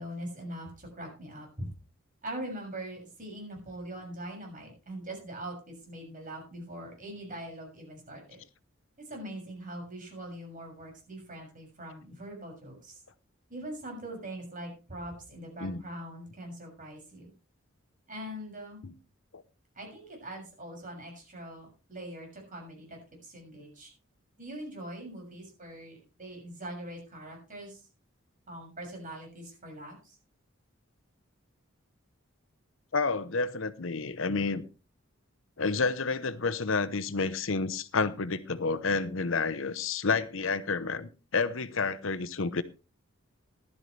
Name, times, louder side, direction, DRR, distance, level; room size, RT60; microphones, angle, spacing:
voice 1, 0.0-1.6 2.2-8.4 9.0-13.0 13.5-17.3 18.1-18.8 19.7-23.9 24.4-27.8 28.5-30.0, right 1 dB, 40° right, 0 dB, 6.8 m, -42 dB
voice 2, 32.9-34.6 35.6-42.6, left 4 dB, 70° left, 13 dB, 0.9 m, -30 dB
15.0 x 12.0 x 3.3 m, 0.32 s
head